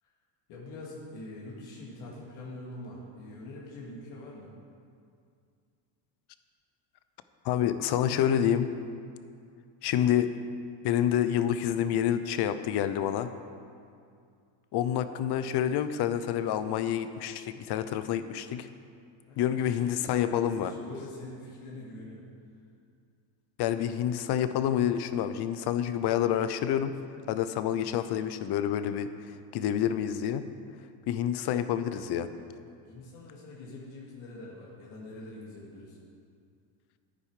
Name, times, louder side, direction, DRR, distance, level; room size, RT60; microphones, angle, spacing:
voice 1, 0.5-4.5 19.2-22.2 32.7-36.0, left 2 dB, 70° left, -5 dB, 2.5 m, -44 dB
voice 2, 7.4-8.7 9.8-10.3 10.8-13.3 14.7-18.7 19.4-20.7 23.6-26.9 27.3-29.1 29.5-30.5 31.1-32.3, left 10 dB, 55° left, 12 dB, 0.7 m, -28 dB
10.5 x 9.7 x 4.9 m, 2.3 s
cardioid pair, 135°, 49 cm